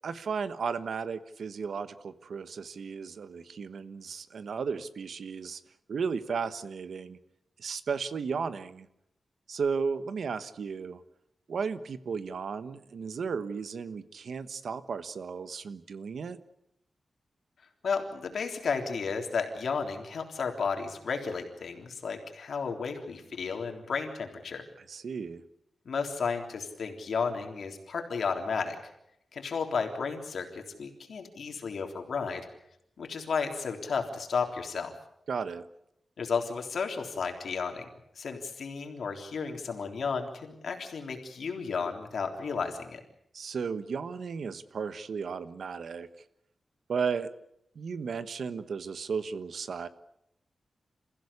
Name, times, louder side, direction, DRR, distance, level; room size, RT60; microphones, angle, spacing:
voice 1, 0.0-5.6 5.9-7.2 7.6-8.9 9.5-11.0 11.5-16.4 24.9-25.4 35.3-35.6 43.3-46.1 46.9-47.3 47.7-49.9, right 5 dB, 70° right, 12 dB, 1.2 m, -34 dB
voice 2, 17.8-24.6 25.9-28.8 29.3-32.5 33.0-34.9 36.2-37.9 38.2-43.0, left 5 dB, 70° left, 4 dB, 3.6 m, -33 dB
28.5 x 15.5 x 8.5 m, 0.80 s
wide cardioid pair, 160°, 0 cm